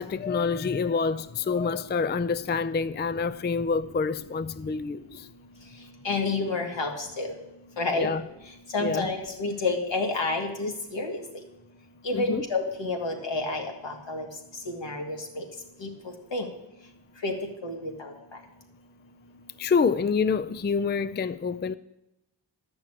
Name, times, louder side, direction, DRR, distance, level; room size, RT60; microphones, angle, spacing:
voice 1, 0.0-5.3 8.0-8.2 8.8-9.1 12.1-12.4 19.6-21.7, left 5 dB, 25° left, 0.4 m, -27 dB
voice 2, 6.0-7.3 7.8-8.1 8.7-11.2 12.0-14.2 14.7-15.4 15.8-15.9 16.3-16.5 17.2-17.3 17.6-18.1, left 3 dB, 80° left, 2.3 m, -29 dB
12.5 x 6.1 x 8.8 m
wide cardioid pair, 115°, 44 cm